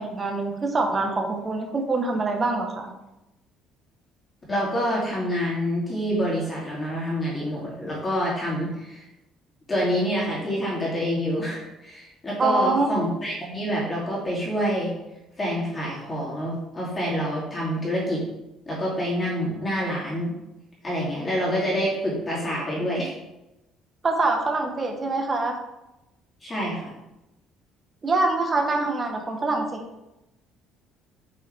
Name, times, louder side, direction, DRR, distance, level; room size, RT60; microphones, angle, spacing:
voice 1, 0.0-2.9 12.4-12.9 24.0-25.6 28.0-29.9, right 3 dB, 25° right, 2 dB, 1.2 m, -24 dB
voice 2, 4.5-9.0 9.7-14.9 15.4-18.2 18.7-20.3 20.8-23.1 26.4-26.9, equal, 20° left, -6 dB, 2.8 m, -27 dB
8.6 x 5.5 x 3.5 m, 0.94 s
cardioid pair, 140°, 0 cm